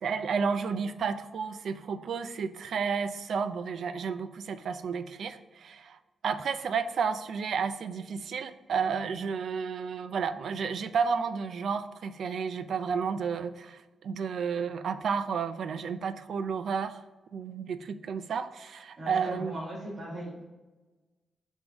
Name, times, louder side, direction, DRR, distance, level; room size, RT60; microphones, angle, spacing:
voice 1, 0.0-6.0 6.2-17.0 17.3-19.6, right 6 dB, 70° right, 11 dB, 0.4 m, -32 dB
voice 2, 19.0-20.4, right 1 dB, 30° right, -7 dB, 1.8 m, -38 dB
6.1 x 3.5 x 4.8 m, 1.2 s
wide cardioid pair, 135°, 0 cm